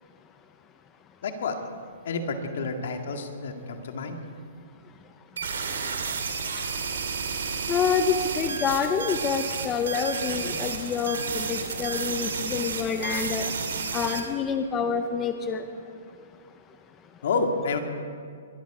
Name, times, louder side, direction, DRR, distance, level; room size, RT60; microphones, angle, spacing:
voice 1, 1.2-1.6 2.0-4.2 17.2-17.8, left 4 dB, 65° left, 4 dB, 2.0 m, -29 dB
sound 1, 5.4-14.2, right 5 dB, 80° right, 2.5 m, -31 dB
voice 2, 7.7-13.5 13.9-15.6, left 6 dB, 20° left, 7 dB, 0.7 m, -27 dB
22.5 x 11.5 x 4.9 m, 2.3 s
hypercardioid pair, 150°, 0 cm